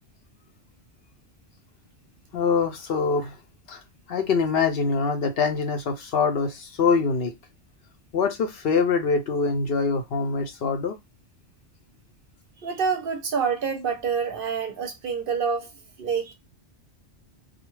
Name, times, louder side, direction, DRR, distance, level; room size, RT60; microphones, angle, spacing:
voice 1, 2.3-3.4 3.7-3.8 4.1-7.3 8.1-11.0, left 5 dB, 65° left, 0.7 m, -24 dB
voice 2, 12.6-15.7 16.0-16.3, right 6 dB, 60° right, 0.7 m, -27 dB
2.4 x 2.2 x 3.0 m
omnidirectional pair, 1.2 m